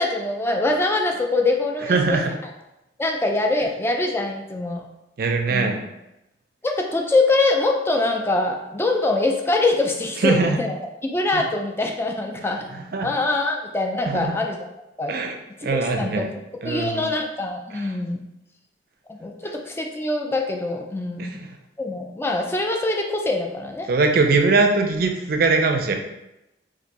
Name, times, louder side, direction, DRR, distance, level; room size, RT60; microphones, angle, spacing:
voice 1, 0.0-2.2 3.0-4.8 5.5-5.7 6.6-14.7 15.0-15.1 15.6-18.2 19.1-21.4 21.8-23.9, left 2 dB, 15° left, 2 dB, 0.3 m, -24 dB
voice 2, 1.9-2.3 5.2-5.8 10.2-10.6 11.3-11.4 12.9-13.1 14.1-14.3 15.1-15.4 15.6-16.3 16.6-17.1 21.2-21.5 23.9-25.9, right 4 dB, 55° right, 4 dB, 0.4 m, -21 dB
2.6 x 2.6 x 4.0 m, 0.91 s
head